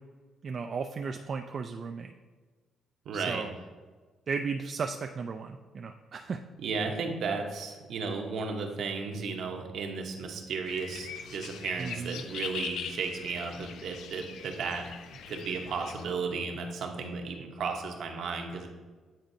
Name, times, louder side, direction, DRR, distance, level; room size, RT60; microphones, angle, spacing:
voice 1, 0.4-2.1 3.1-3.5 4.3-6.4 11.8-12.2, right 5 dB, 50° right, 5 dB, 0.3 m, -35 dB
voice 2, 3.1-3.4 6.6-14.9 15.3-18.7, right 4 dB, 70° right, 3 dB, 0.9 m, -34 dB
sound 1, 10.7-16.0, left 7 dB, 80° left, 0.4 m, -41 dB
8.9 x 3.9 x 2.7 m, 1.4 s
cardioid pair, 90°, 0 cm